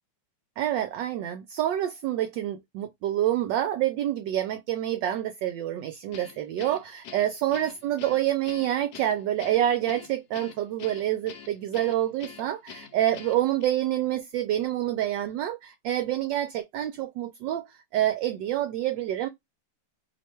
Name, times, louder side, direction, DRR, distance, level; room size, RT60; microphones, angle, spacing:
voice 1, 0.6-19.3, right 12 dB, 75° right, 1.1 m, -27 dB
Guitar, 6.1-13.7, left 7 dB, 70° left, 1.0 m, -45 dB
3.2 x 2.2 x 4.3 m
omnidirectional pair, 2.2 m